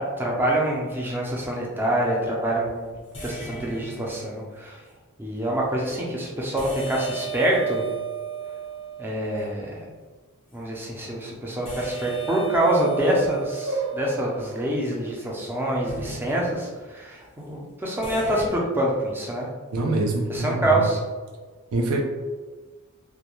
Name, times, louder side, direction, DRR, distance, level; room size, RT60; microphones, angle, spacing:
voice 1, 0.0-2.9 3.2-4.8 5.2-7.9 9.0-9.9 10.5-13.7 14.0-19.5 20.3-21.0, right 1 dB, 10° right, -3 dB, 0.4 m, -26 dB
sound 1, 1.6-1.7 3.1-4.7 6.6-9.6 11.6-15.0 15.9-16.9 18.0-18.5, right 6 dB, 25° left, 0.6 m, -35 dB
voice 2, 13.7-14.0 19.7-20.9 21.7-22.0, right 2 dB, 90° right, 2 dB, 0.4 m, -25 dB
2.3 x 2.1 x 2.9 m, 1.4 s
head